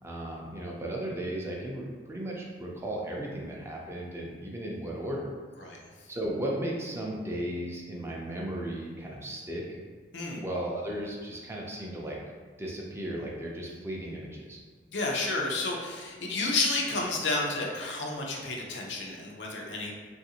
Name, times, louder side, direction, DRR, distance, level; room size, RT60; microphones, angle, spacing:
voice 1, 0.0-5.3 6.1-9.8 10.4-12.2 12.6-14.6, right 1 dB, 15° right, -2 dB, 0.4 m, -35 dB
voice 2, 14.9-19.9, left 3 dB, 85° left, -1 dB, 0.5 m, -31 dB
3.1 x 2.5 x 2.8 m, 1.5 s
head